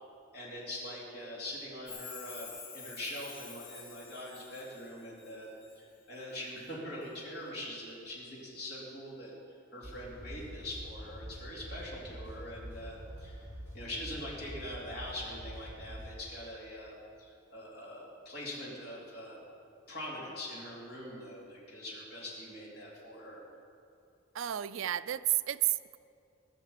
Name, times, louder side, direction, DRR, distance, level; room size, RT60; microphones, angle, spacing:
voice 1, 0.3-5.5 5.8-9.3 9.7-19.4 19.9-23.4, left 1 dB, 50° left, -6 dB, 3.9 m, -43 dB
Chime, 1.8-5.8 6.1-6.7 7.0-7.1, left 5 dB, 65° left, 3.7 m, -49 dB
sound 1, 9.8-16.1, equal, 10° right, 3.6 m, -46 dB
voice 2, 24.3-26.0, right 14 dB, 70° right, 15 dB, 0.4 m, -31 dB
19.0 x 6.7 x 7.3 m, 2.7 s
head